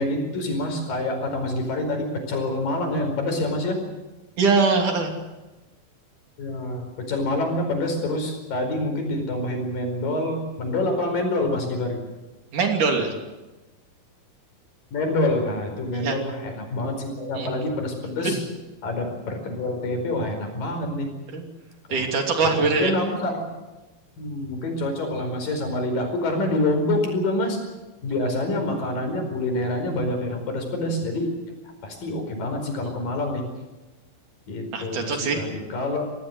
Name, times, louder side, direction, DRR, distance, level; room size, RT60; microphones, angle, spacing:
voice 1, 0.0-3.8 6.4-12.0 14.9-18.4 18.8-21.1 21.9-22.1 22.4-23.5 24.2-27.6 28.0-31.3 31.8-33.4 34.5-36.0, left 1 dB, 70° left, 4 dB, 6.5 m, -26 dB
voice 2, 4.4-5.2 12.5-13.1 15.9-16.2 17.3-17.5 18.2-18.3 21.3-21.5 21.9-22.9 34.7-35.4, right 4 dB, 60° right, 3 dB, 4.3 m, -22 dB
26.0 x 18.0 x 7.9 m, 1.1 s
omnidirectional pair, 4.0 m